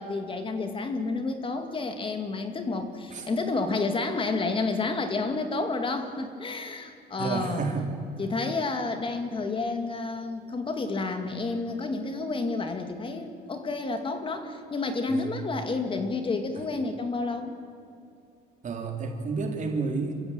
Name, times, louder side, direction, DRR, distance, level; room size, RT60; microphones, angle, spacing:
voice 1, 0.0-7.6 8.2-17.5, left 3 dB, 30° left, 6 dB, 2.3 m, -30 dB
voice 2, 7.2-7.9 15.1-15.3 18.6-20.1, right 4 dB, 45° right, 3 dB, 3.6 m, -30 dB
26.5 x 15.5 x 8.9 m, 2.5 s
cardioid pair, 110°, 17 cm